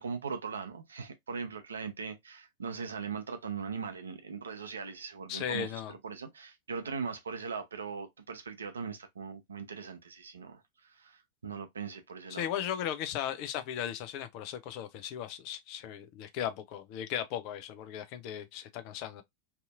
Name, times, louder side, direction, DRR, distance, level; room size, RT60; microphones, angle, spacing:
voice 1, 0.0-10.6 10.9-12.5, right 5 dB, 70° right, 0.6 m, -40 dB
voice 2, 5.3-5.9 12.3-19.2, left 10 dB, 45° left, 0.5 m, -37 dB
2.7 x 2.5 x 2.4 m
figure-of-eight pair, 90°, 0 cm